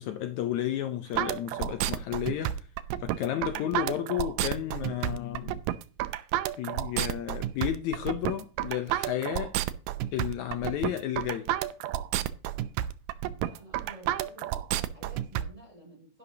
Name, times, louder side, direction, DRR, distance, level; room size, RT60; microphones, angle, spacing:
voice 1, 0.0-2.7 3.0-5.6 6.6-9.5 10.1-11.5, left 11 dB, 85° left, 1.6 m, -32 dB
sound 1, 1.2-15.4, right 13 dB, 80° right, 2.0 m, -30 dB
voice 2, 13.3-16.2, right 1 dB, 10° right, 5.1 m, -51 dB
11.5 x 11.0 x 2.8 m
omnidirectional pair, 4.4 m